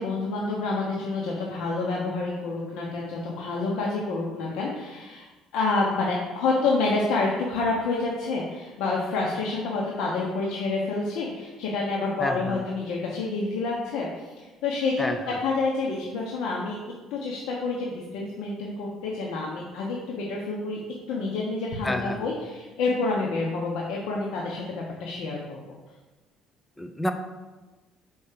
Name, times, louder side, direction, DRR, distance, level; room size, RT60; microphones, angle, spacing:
voice 1, 0.0-5.2 5.5-14.3 14.6-16.8 17.1-20.8 21.1-25.6, left 3 dB, 85° left, -3 dB, 1.2 m, -28 dB
voice 2, 12.2-12.7 15.0-15.4 21.8-22.3 26.8-27.1, left 1 dB, 10° left, 6 dB, 0.5 m, -29 dB
5.6 x 5.2 x 6.7 m, 1.2 s
cardioid pair, 155°, 0 cm